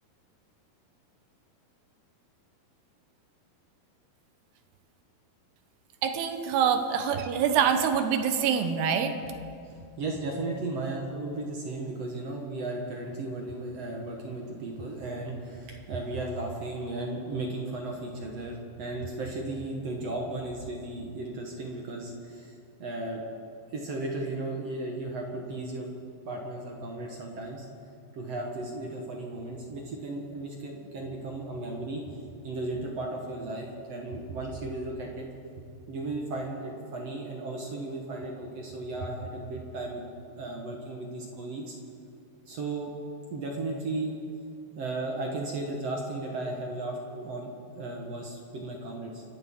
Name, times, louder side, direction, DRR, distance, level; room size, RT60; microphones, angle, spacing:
voice 1, 6.0-9.2, right 7 dB, 85° right, 7 dB, 3.0 m, -25 dB
voice 2, 9.6-23.2 23.7-25.9 26.2-27.7 28.1-32.2 32.4-35.3 35.9-41.7 42.4-42.9 43.3-44.1 44.8-49.2, right 2 dB, 60° right, 0 dB, 1.7 m, -35 dB
29.0 x 13.0 x 3.7 m, 2.4 s
omnidirectional pair, 4.6 m